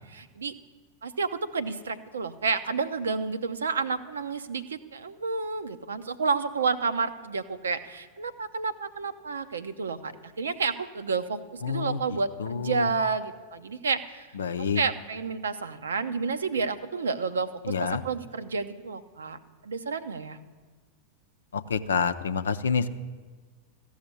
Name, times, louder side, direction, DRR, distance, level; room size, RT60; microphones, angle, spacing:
voice 1, 0.1-0.5 1.0-14.3 14.6-19.4 19.6-20.4, right 4 dB, 70° right, 11 dB, 0.7 m, -30 dB
voice 2, 11.6-12.0 12.4-12.9 14.4-14.8 17.7-18.0 21.5-22.9, left 6 dB, 70° left, 11 dB, 0.6 m, -28 dB
14.5 x 6.4 x 9.7 m, 1.4 s
figure-of-eight pair, 90°, 0 cm